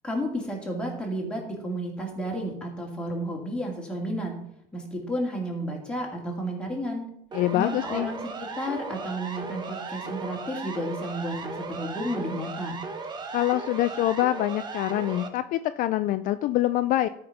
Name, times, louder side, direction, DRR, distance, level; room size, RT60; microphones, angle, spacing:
voice 1, 0.0-4.3 4.7-7.0 7.5-12.8, equal, 5° left, -1 dB, 2.5 m, -32 dB
voice 2, 7.3-8.1 13.3-17.1, left 14 dB, 55° left, 11 dB, 0.4 m, -25 dB
Siren, 7.3-15.3, right 4 dB, 25° right, 1.0 m, -36 dB
12.5 x 5.2 x 5.8 m, 0.73 s
cardioid pair, 150°, 17 cm